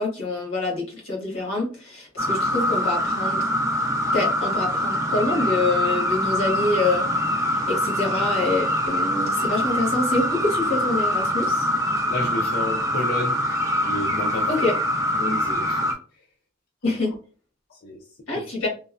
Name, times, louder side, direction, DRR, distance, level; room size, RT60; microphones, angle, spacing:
voice 1, 0.0-3.5 4.1-11.7 14.5-14.7 16.8-17.1 18.3-18.7, left 2 dB, 75° left, -2 dB, 1.4 m, -26 dB
sound 1, 2.2-15.9, left 1 dB, 15° right, 0.6 m, -24 dB
voice 2, 12.1-13.6 13.8-14.5 15.1-16.3 16.9-17.1 17.7-18.0 18.6-18.7, left 1 dB, 50° left, 1 dB, 0.4 m, -32 dB
3.1 x 2.1 x 2.4 m, 0.38 s
head